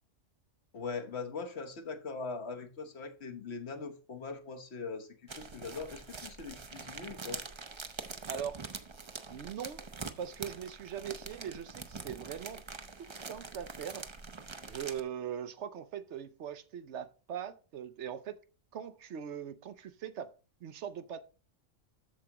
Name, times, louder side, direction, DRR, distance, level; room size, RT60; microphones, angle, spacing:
voice 1, 0.7-7.4, left 4 dB, 60° left, 1.3 m, -41 dB
sound 1, 5.3-15.0, right 4 dB, 30° right, 0.6 m, -44 dB
voice 2, 8.3-8.6 9.3-9.9 10.2-12.6 13.0-14.1 14.7-18.4 18.7-20.4 20.6-21.2, right 8 dB, 70° right, 0.9 m, -41 dB
13.5 x 4.8 x 2.9 m
omnidirectional pair, 1.3 m